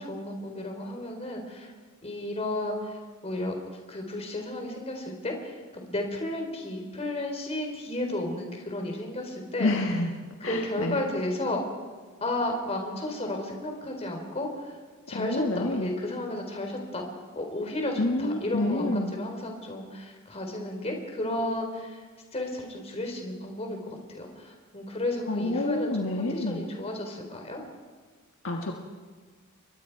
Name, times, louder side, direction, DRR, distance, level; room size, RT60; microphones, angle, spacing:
voice 1, 0.0-1.7 2.0-3.5 3.9-9.7 10.4-11.6 12.2-14.7 15.1-17.0 17.3-22.0 22.3-27.6, left 1 dB, 30° left, 3 dB, 4.1 m, -33 dB
voice 2, 9.6-10.1 10.4-11.0 15.1-15.9 18.0-19.1 25.3-26.6 28.4-28.8, left 2 dB, 65° left, 1 dB, 1.7 m, -28 dB
29.5 x 23.0 x 4.8 m, 1.5 s
head